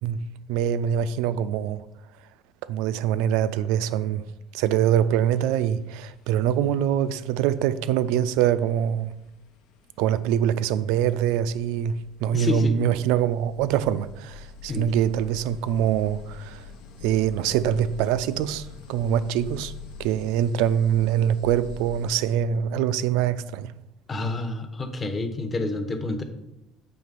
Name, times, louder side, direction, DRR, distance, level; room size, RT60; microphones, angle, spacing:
voice 1, 0.0-1.8 2.7-4.2 4.5-9.1 10.0-16.6 17.0-19.7 20.0-23.7, right 9 dB, 85° right, 0.3 m, -24 dB
The Biggening Ray, 4.6-4.7 5.1-22.4, left 5 dB, 85° left, 0.8 m, -45 dB
voice 2, 12.3-12.7 14.7-14.9 24.1-26.2, left 2 dB, 20° left, 0.7 m, -28 dB
7.8 x 3.2 x 5.1 m
cardioid pair, 145°, 0 cm